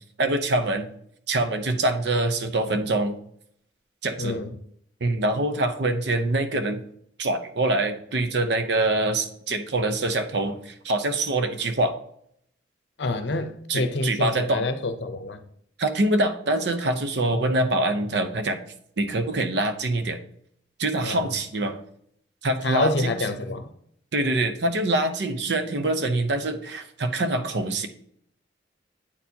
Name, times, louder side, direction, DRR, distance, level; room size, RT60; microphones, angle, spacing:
voice 1, 0.2-0.9 1.3-3.2 4.0-4.4 5.0-6.8 7.2-12.0 13.7-14.7 15.8-18.6 19.0-20.2 20.8-21.8 22.4-23.2 24.1-27.9, right 2 dB, 65° right, 0.6 m, -24 dB
voice 2, 4.2-4.5 13.0-15.4 17.2-17.5 21.0-21.3 22.6-23.7, left 2 dB, 65° left, 0.7 m, -27 dB
8.6 x 4.4 x 2.7 m
head